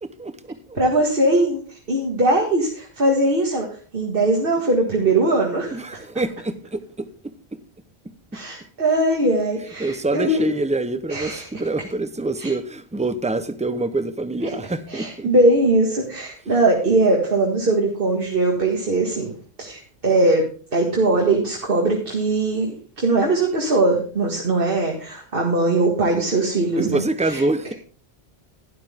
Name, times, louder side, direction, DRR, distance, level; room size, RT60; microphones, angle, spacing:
voice 1, 0.0-0.8 5.7-7.3 9.8-15.3 26.8-27.7, right 2 dB, 5° right, 11 dB, 0.8 m, -26 dB
voice 2, 0.8-1.6 1.9-5.8 8.3-10.5 11.1-11.5 12.4-12.5 14.4-19.3 19.6-27.4, right 2 dB, 60° right, 0 dB, 2.1 m, -20 dB
12.5 x 11.5 x 3.6 m, 0.41 s
omnidirectional pair, 1.1 m